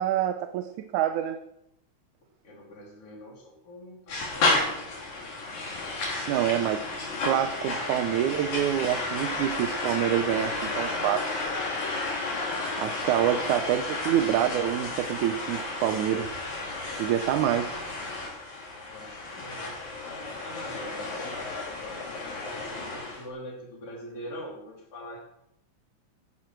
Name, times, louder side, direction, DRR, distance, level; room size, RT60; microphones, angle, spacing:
voice 1, 0.0-1.4 6.3-6.9 7.3-11.4 12.8-16.4 17.0-17.8, right 11 dB, 85° right, 8 dB, 2.2 m, -27 dB
voice 2, 2.4-5.3 13.4-13.6 17.6-17.8 18.9-22.0 22.5-25.2, equal, 50° left, -1 dB, 4.1 m, -44 dB
sound 1, 4.1-23.2, left 2 dB, 75° left, 4.7 m, -32 dB
16.0 x 11.5 x 4.6 m, 0.79 s
omnidirectional pair, 3.4 m